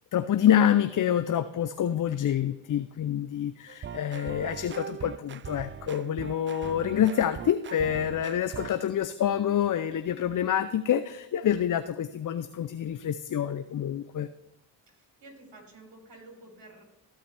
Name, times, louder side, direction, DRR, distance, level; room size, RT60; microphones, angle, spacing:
voice 1, 0.1-14.3, left 10 dB, 40° left, 12 dB, 0.6 m, -27 dB
sound 1, 3.7-8.8, right 8 dB, 25° right, 0.4 m, -40 dB
voice 2, 14.9-16.8, right 2 dB, 60° right, 1 dB, 3.8 m, -51 dB
15.0 x 5.7 x 3.4 m, 0.94 s
hypercardioid pair, 45°, 48 cm